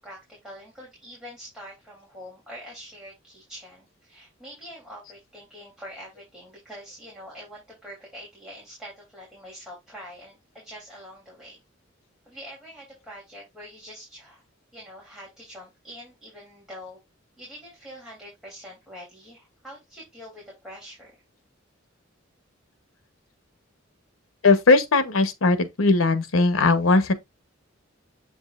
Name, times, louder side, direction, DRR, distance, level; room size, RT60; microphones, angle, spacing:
voice 1, 0.0-11.6 12.2-14.4 14.7-17.0 17.4-21.2, equal, 5° right, 3.2 m, -44 dB
voice 2, 24.4-27.1, left 3 dB, 90° left, 1.0 m, -19 dB
7.5 x 5.2 x 2.5 m
head